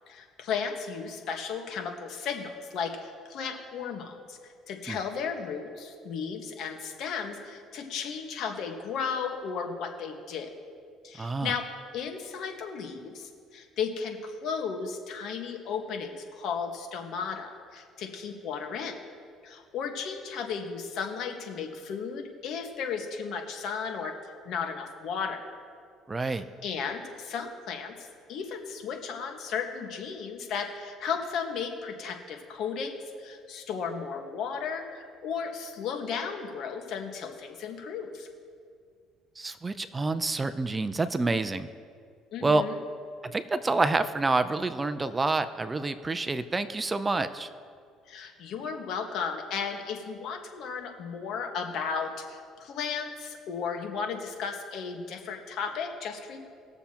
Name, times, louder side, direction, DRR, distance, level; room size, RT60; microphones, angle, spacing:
voice 1, 0.1-10.5 11.0-11.6 11.9-19.0 19.4-24.1 24.4-25.4 26.2-38.3 42.3-42.8 48.1-56.4, left 6 dB, 65° left, 3 dB, 1.5 m, -35 dB
voice 2, 11.2-11.5 26.1-26.4 39.4-41.7 42.4-42.6 43.2-47.5, right 3 dB, 20° right, 11 dB, 0.5 m, -28 dB
20.5 x 7.0 x 2.9 m, 2.1 s
supercardioid pair, 95°, 0 cm